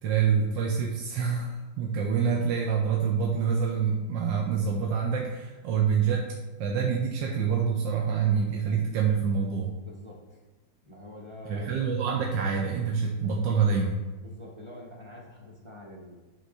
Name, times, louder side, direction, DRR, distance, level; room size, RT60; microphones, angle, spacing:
voice 1, 0.0-6.3 6.6-9.7 11.5-14.0, right 6 dB, 85° right, 0 dB, 1.5 m, -26 dB
voice 2, 9.8-10.4 10.8-11.9 14.2-16.2, left 1 dB, 20° right, -3 dB, 0.9 m, -46 dB
9.0 x 3.8 x 5.5 m, 1.2 s
omnidirectional pair, 2.0 m